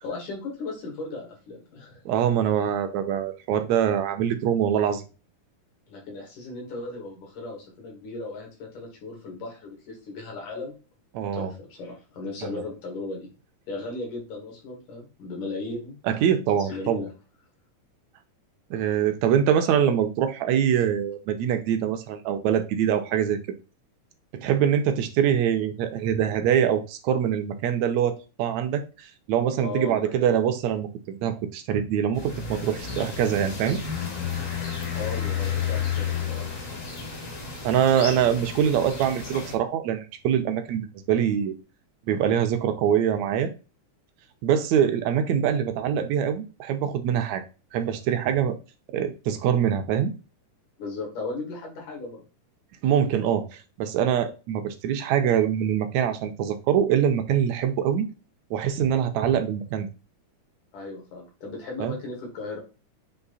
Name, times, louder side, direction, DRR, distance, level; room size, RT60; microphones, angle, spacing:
voice 1, 0.0-2.0 5.9-10.8 11.3-13.3 13.7-16.0 16.6-17.1 29.6-30.1 35.0-36.5 50.8-52.2 60.7-62.6, left 3 dB, 75° left, 0 dB, 4.0 m, -36 dB
voice 2, 2.1-5.0 11.1-11.5 12.4-12.6 16.1-17.1 18.7-23.4 24.3-33.8 37.6-41.5 42.1-43.5 44.4-47.5 47.7-48.6 48.9-50.1 52.8-58.1 58.5-59.9 61.8-62.0, right 9 dB, 75° right, 7 dB, 1.9 m, -24 dB
sound 1, 32.1-39.5, left 7 dB, 40° left, 1.2 m, -31 dB
8.0 x 3.2 x 4.0 m, 0.32 s
omnidirectional pair, 3.6 m